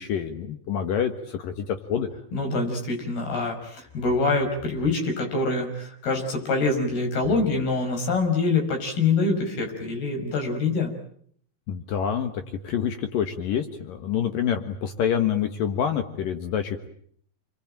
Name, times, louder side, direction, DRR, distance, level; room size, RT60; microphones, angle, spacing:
voice 1, 0.0-2.1 11.7-16.9, left 8 dB, 70° left, 7 dB, 3.1 m, -27 dB
voice 2, 2.3-10.9, left 3 dB, 85° left, 3 dB, 7.6 m, -25 dB
29.5 x 22.5 x 8.9 m, 0.65 s
omnidirectional pair, 4.3 m